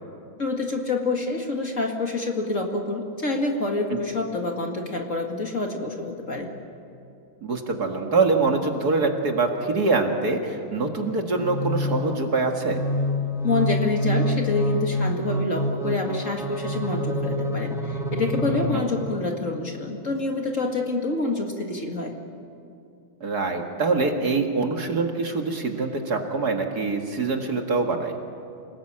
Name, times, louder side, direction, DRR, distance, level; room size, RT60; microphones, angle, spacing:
voice 1, 0.4-6.5 13.4-22.1, left 3 dB, 40° left, 2 dB, 2.4 m, -27 dB
voice 2, 7.4-12.8 18.7-18.8 23.2-28.2, right 3 dB, 50° right, 3 dB, 2.3 m, -24 dB
sound 1, 11.3-19.3, left 1 dB, ahead, 2.5 m, -27 dB
28.0 x 19.5 x 8.7 m, 2.6 s
omnidirectional pair, 2.2 m